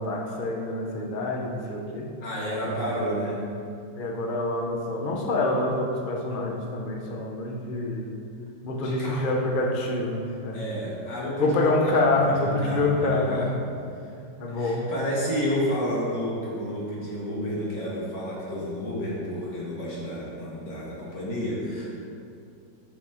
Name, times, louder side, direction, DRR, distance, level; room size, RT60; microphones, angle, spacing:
voice 1, 0.0-2.1 2.6-2.8 4.0-8.1 8.6-10.6 11.4-13.6 14.4-14.9, left 2 dB, 45° left, 0 dB, 0.7 m, -26 dB
voice 2, 2.2-3.4 8.8-9.3 10.5-13.5 14.5-21.9, equal, 75° left, -6 dB, 2.5 m, -31 dB
7.2 x 5.7 x 4.9 m, 2.5 s
omnidirectional pair, 1.9 m